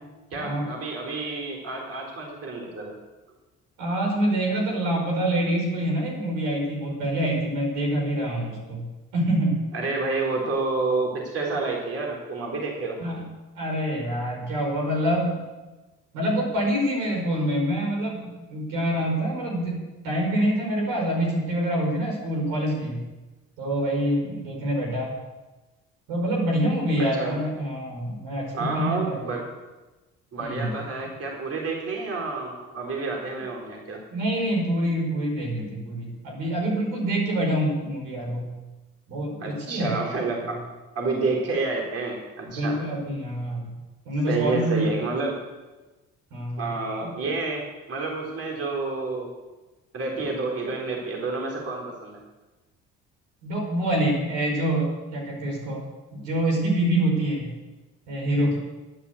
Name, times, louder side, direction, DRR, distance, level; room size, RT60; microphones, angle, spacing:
voice 1, 0.3-2.9 9.7-13.0 27.0-27.3 28.5-29.5 30.3-34.0 39.4-40.6 41.0-42.8 44.3-45.4 46.6-49.3 49.9-52.2, right 3 dB, 55° right, -1 dB, 3.7 m, -29 dB
voice 2, 3.8-8.9 9.1-9.6 13.0-13.2 13.6-15.4 16.1-23.0 23.6-25.1 26.1-29.3 30.4-30.7 34.1-38.5 39.1-40.0 42.5-43.7 44.1-44.9 46.3-46.7 53.4-55.8 56.1-57.5 58.1-58.6, right 1 dB, 90° right, -1 dB, 5.2 m, -26 dB
11.5 x 10.0 x 8.4 m, 1.1 s
supercardioid pair, 70°, 29 cm